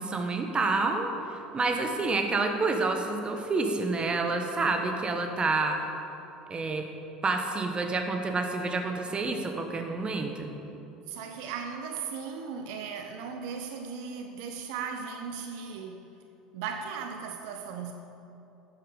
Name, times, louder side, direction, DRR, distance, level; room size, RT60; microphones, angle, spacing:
voice 1, 0.0-5.8 6.5-6.9 7.2-10.5, right 3 dB, 25° right, 5 dB, 1.4 m, -28 dB
voice 2, 11.1-16.1 16.5-17.9, right 6 dB, 65° right, 5 dB, 0.8 m, -37 dB
12.5 x 8.9 x 5.1 m, 2.9 s
hypercardioid pair, 70°, 4 cm